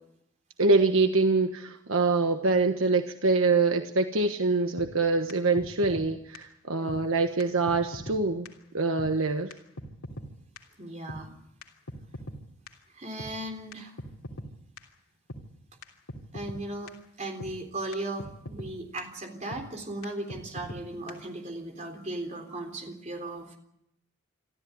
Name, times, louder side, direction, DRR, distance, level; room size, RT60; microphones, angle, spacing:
voice 1, 0.6-8.5 8.7-9.5, right 3 dB, 70° right, 6 dB, 1.3 m, -25 dB
sound 1, 4.8-4.9 5.3-5.4 5.6-6.1 6.3-6.4 6.9-7.0 7.4-7.5 7.7-8.2 8.4-8.5 9.0-9.1 9.5-9.6 9.8-10.3 10.6-10.7 11.1-11.2 11.6-12.4 12.7-12.8 13.2-13.3 13.7-13.8 14.0-14.5 14.8-14.9 15.3-15.4 15.8-15.9 16.1-16.6 16.9-17.0 17.4-17.5 17.9-18.0 18.2-18.7 19.0-19.1 19.5-19.6 20.0-20.1 20.3-20.8 21.1-21.2, equal, 90° left, 3.2 m, -39 dB
voice 2, 6.8-7.1 10.8-11.3 12.9-13.9 16.3-16.9 17.2-23.6, right 1 dB, 35° right, 4 dB, 3.7 m, -37 dB
25.5 x 14.0 x 9.7 m, 0.79 s
head